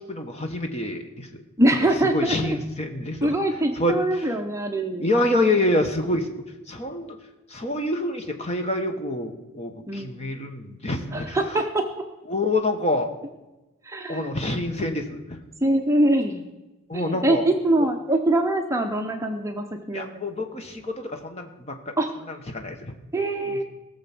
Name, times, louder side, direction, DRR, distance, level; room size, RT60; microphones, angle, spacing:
voice 1, 0.1-1.4 2.1-3.4 3.8-4.3 5.0-6.3 6.7-7.2 7.5-11.4 12.3-13.1 14.1-15.4 16.9-17.5 19.9-21.8 22.3-22.9 23.5-23.6, left 1 dB, 30° left, 5 dB, 1.2 m, -27 dB
voice 2, 1.6-2.6 3.2-5.1 9.9-10.2 11.1-11.8 13.8-14.4 15.6-16.4 16.9-20.1 22.0-22.1 23.1-23.6, right 1 dB, 15° right, 3 dB, 0.7 m, -23 dB
18.0 x 6.9 x 6.0 m, 1.0 s
head